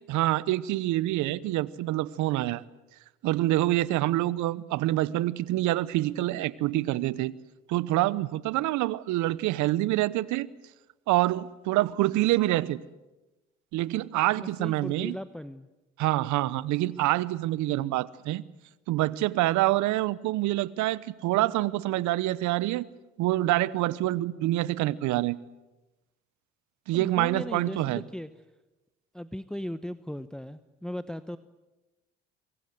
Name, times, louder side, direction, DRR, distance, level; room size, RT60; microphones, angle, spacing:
voice 1, 0.1-2.6 3.2-7.3 7.7-10.5 11.1-12.8 13.7-15.1 16.0-18.4 18.9-22.9 23.2-25.4 26.9-28.0, right 16 dB, 65° right, 1.0 m, -26 dB
voice 2, 14.3-15.7 26.9-28.3 29.1-31.4, left 1 dB, ahead, 1.0 m, -37 dB
25.5 x 22.5 x 7.9 m
hypercardioid pair, 60°, 31 cm